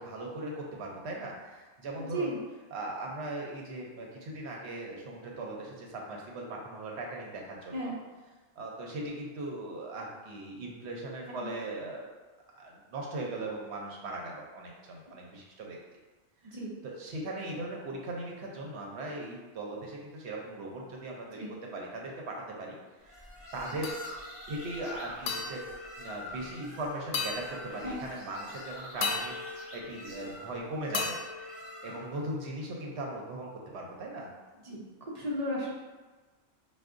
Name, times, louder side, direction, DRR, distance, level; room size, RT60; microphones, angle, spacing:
voice 1, 0.0-2.3 2.7-7.7 8.6-12.1 12.6-15.8 17.0-21.5 21.7-23.9 24.5-25.6 26.0-31.5 31.8-34.3, right 2 dB, 70° right, -1 dB, 0.9 m, -39 dB
voice 2, 2.0-2.4 7.7-7.9 11.3-11.5 16.4-16.7 21.4-21.6 27.8-28.0 34.6-35.7, equal, 45° right, -4 dB, 0.6 m, -35 dB
sound 1, 23.0-32.3, left 1 dB, 15° left, 1.0 m, -46 dB
sound 2, 23.8-24.4 25.3-26.7 27.1-28.2 29.0-30.5 30.9-32.4, left 4 dB, 70° left, 0.8 m, -37 dB
4.5 x 2.3 x 2.5 m, 1.3 s
omnidirectional pair, 1.2 m